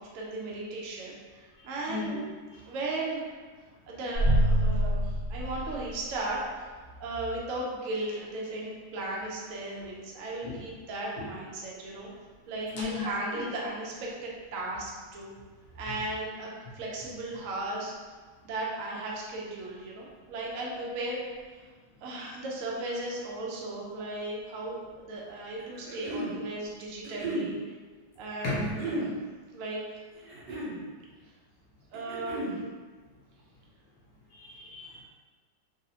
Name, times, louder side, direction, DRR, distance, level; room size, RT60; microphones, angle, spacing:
voice 1, 0.0-2.1 2.7-3.2 3.9-6.6 7.0-12.1 12.5-15.3 15.8-16.5 16.7-17.9 18.4-21.2 22.0-27.6 28.2-29.1 29.5-30.0 31.9-32.5, right 2 dB, 85° right, -3 dB, 0.7 m, -36 dB
sound 1, 4.1-6.4, right 1 dB, 45° right, 1.5 m, -26 dB
voice 2, 12.7-13.4 28.4-28.7 34.3-35.0, left 3 dB, 70° left, -4 dB, 1.2 m, -34 dB
sound 2, 25.6-26.3 27.0-27.5 28.6-29.1 30.2-30.8 31.9-32.6, right 1 dB, 65° right, 1.4 m, -34 dB
3.7 x 2.0 x 2.7 m, 1.4 s
omnidirectional pair, 2.1 m